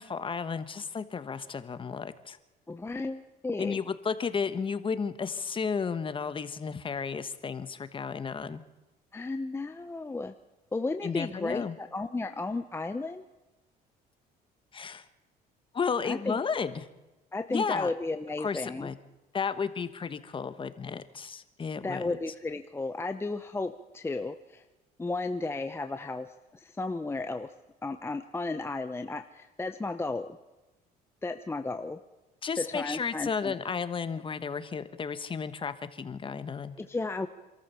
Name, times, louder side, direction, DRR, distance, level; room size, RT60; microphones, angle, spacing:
voice 1, 0.0-2.4 3.6-8.6 11.0-11.7 14.7-15.1 15.7-16.9 17.5-17.9 18.4-19.0 19.3-22.0 32.4-36.7, left 5 dB, 30° left, 12 dB, 1.3 m, -33 dB
voice 2, 2.7-3.8 9.1-10.3 10.7-13.2 16.0-16.4 17.3-18.9 21.8-24.6 25.0-26.3 26.5-27.5 27.8-30.4 31.2-32.0 32.6-33.5 36.8-37.3, left 3 dB, 15° left, 8 dB, 0.8 m, -34 dB
27.0 x 13.5 x 7.0 m, 1.1 s
cardioid pair, 110°, 17 cm